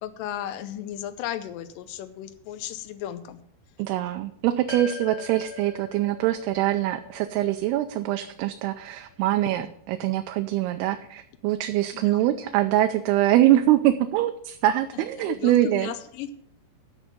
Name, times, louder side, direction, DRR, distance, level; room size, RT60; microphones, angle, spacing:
voice 1, 0.0-3.4 11.9-12.2 14.9-16.4, left 11 dB, 90° left, 10 dB, 1.9 m, -35 dB
voice 2, 3.8-15.9, right 13 dB, 80° right, 7 dB, 2.5 m, -23 dB
sound 1, 4.7-9.1, left 4 dB, 50° left, 3.0 m, -42 dB
12.0 x 5.4 x 7.5 m, 0.68 s
omnidirectional pair, 4.7 m